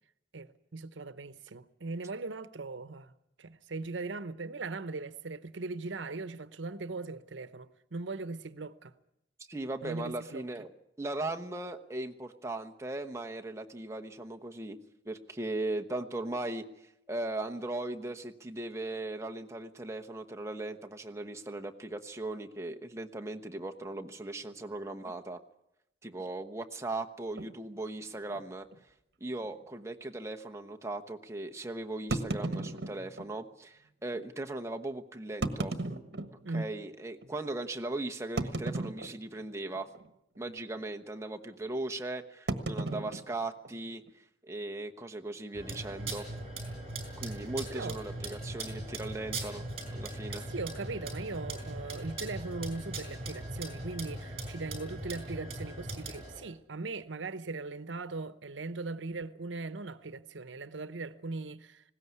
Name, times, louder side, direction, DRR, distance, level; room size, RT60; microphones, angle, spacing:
voice 1, 0.3-3.1 3.4-8.9 9.8-10.4 36.4-36.7 47.7-48.0 50.3-61.9, right 3 dB, 85° right, 0.9 m, -39 dB
voice 2, 9.5-10.7 11.0-14.8 15.0-16.6 17.1-25.4 26.0-28.7 29.2-35.7 36.5-39.9 40.4-46.3 47.2-49.6 49.9-50.5, right 2 dB, 15° right, 1.1 m, -38 dB
sound 1, 27.4-27.5 28.3-28.4 28.7-28.8 29.4-29.5 32.1-33.3 34.1-34.2 35.3-36.7 37.2-37.3 38.4-39.5 39.7-40.1 40.3-40.7 42.5-44.1, right 2 dB, 60° right, 1.5 m, -35 dB
sound 2, 45.5-56.4, right 2 dB, 35° right, 5.9 m, -40 dB
20.0 x 17.5 x 9.6 m
head